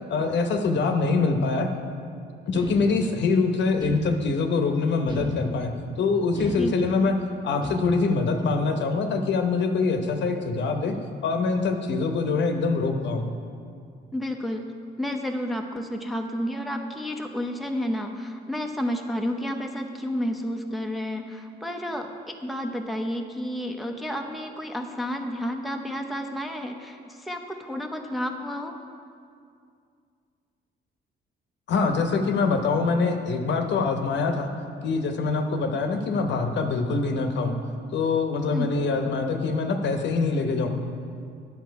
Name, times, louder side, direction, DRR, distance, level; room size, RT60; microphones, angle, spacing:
voice 1, 0.1-1.7 2.5-5.7 6.0-7.2 7.4-10.9 11.2-13.3 31.7-34.5 34.8-37.6 37.9-40.7, left 4 dB, 65° left, 5 dB, 0.9 m, -24 dB
sound 1, 2.5-3.3 3.8-4.6 5.1-5.9 6.3-7.2 7.6-8.2, equal, 25° right, 1.4 m, -36 dB
voice 2, 14.1-14.7 15.0-28.7 38.5-38.7, equal, ahead, 3 dB, 0.7 m, -31 dB
9.5 x 7.2 x 4.7 m, 2.3 s
cardioid pair, 90°, 20 cm